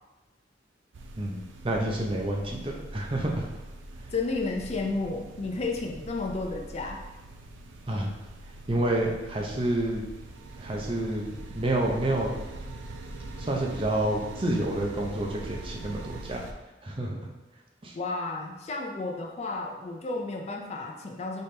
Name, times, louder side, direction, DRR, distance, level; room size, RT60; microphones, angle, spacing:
sound 1, 0.9-16.5, right 2 dB, 85° right, 0.5 m, -42 dB
voice 1, 1.2-3.5 7.9-8.1 8.7-10.1 10.6-11.3 11.5-12.3 13.4-16.4 16.8-17.2 17.8-17.9, right 1 dB, 30° right, 0 dB, 0.6 m, -29 dB
voice 2, 4.1-7.0 17.9-21.4, left 3 dB, 35° left, 1 dB, 0.4 m, -32 dB
4.2 x 3.4 x 3.3 m, 1.1 s
head